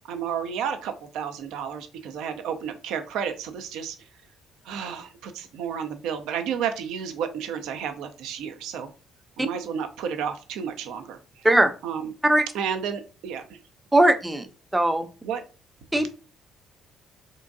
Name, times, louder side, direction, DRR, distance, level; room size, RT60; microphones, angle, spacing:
voice 1, 0.1-4.0 4.6-8.9 9.4-11.2 11.8-12.1 12.5-13.6 15.2-15.4, right 7 dB, 65° right, 8 dB, 0.4 m, -31 dB
voice 2, 13.9-14.5 14.7-15.1 15.9-16.1, right 1 dB, 15° right, 9 dB, 0.5 m, -19 dB
3.7 x 2.6 x 2.4 m, 0.35 s
hypercardioid pair, 50°, 0 cm